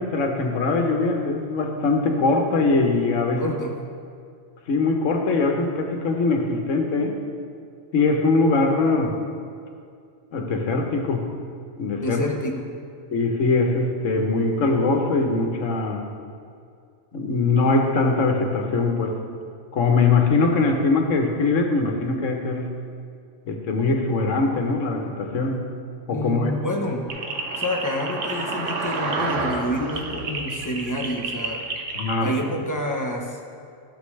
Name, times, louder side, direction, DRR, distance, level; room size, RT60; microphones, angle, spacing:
voice 1, 0.0-3.4 4.7-7.1 7.9-9.2 10.3-11.3 11.8-12.2 13.1-16.0 17.1-19.2 19.7-22.8 23.5-25.7 26.1-26.5 31.9-32.3, left 3 dB, 90° left, 3 dB, 1.3 m, -22 dB
voice 2, 3.4-3.8 12.0-12.7 26.1-27.2 27.6-31.7 32.2-33.4, equal, 15° left, 1 dB, 0.8 m, -28 dB
sound 1, 27.1-32.2, right 3 dB, 80° right, 1.3 m, -29 dB
13.0 x 6.9 x 3.2 m, 2.3 s
omnidirectional pair, 1.3 m